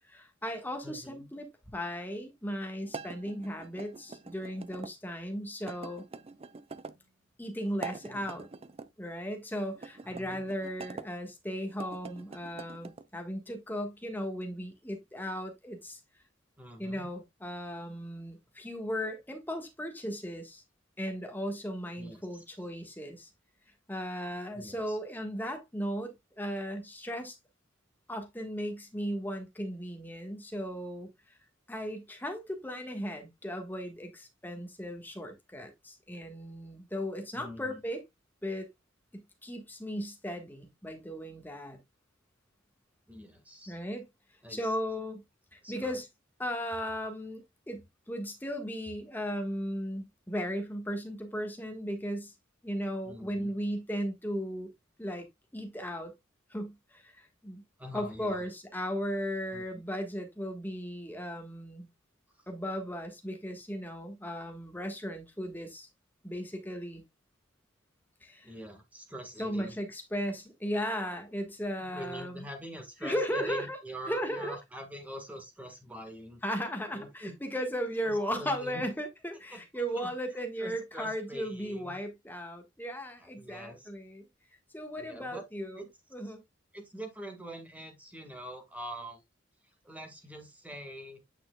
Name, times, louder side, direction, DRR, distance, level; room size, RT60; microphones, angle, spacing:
voice 1, 0.1-6.0 7.4-8.5 9.0-16.0 16.8-20.6 21.0-23.3 23.9-26.1 26.4-27.4 28.1-31.1 31.7-38.0 38.4-38.7 39.1-41.8 43.7-44.1 44.5-45.2 45.5-46.1 46.4-52.3 52.6-54.7 55.0-55.3 55.5-56.1 56.5-57.6 57.9-61.9 62.5-65.9 66.2-67.0 68.2-68.5 69.4-72.4 73.0-73.8 74.1-74.6 76.4-84.2 84.7-85.8 86.1-86.4, equal, 10° left, 1.5 m, -36 dB
voice 2, 0.8-1.3 8.0-8.4 10.0-10.5 16.6-17.1 22.0-22.4 24.5-25.0 37.3-37.8 43.1-43.8 44.4-44.7 45.6-46.0 53.0-53.5 57.8-58.4 59.5-59.8 62.4-62.5 68.4-69.7 71.8-76.4 76.9-77.3 78.0-78.8 79.5-79.6 79.9-82.0 83.2-83.9 84.9-85.4 85.7-85.9 86.2-86.3 86.7-89.2 89.8-91.2, equal, 10° right, 1.7 m, -44 dB
sound 1, 2.9-4.9 5.7-7.0 7.7-8.9 9.7-11.1 11.7-13.1, right 4 dB, 30° right, 0.4 m, -44 dB
8.9 x 5.8 x 2.3 m
head